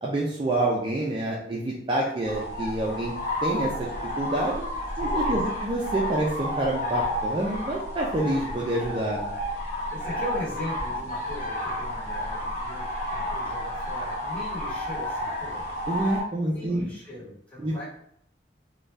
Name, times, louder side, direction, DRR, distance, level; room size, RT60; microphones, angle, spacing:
voice 1, 0.0-3.1 3.4-3.9 4.2-4.6 5.0-9.3 15.9-16.9 17.6-17.7, right 1 dB, 30° right, -3 dB, 0.3 m, -27 dB
sound 1, 2.2-16.2, left 1 dB, 45° left, 0.7 m, -31 dB
voice 2, 5.0-5.5 9.0-9.1 9.9-15.6 16.4-17.9, left 1 dB, 10° left, -12 dB, 1.3 m, -38 dB
2.6 x 2.2 x 3.2 m, 0.69 s
head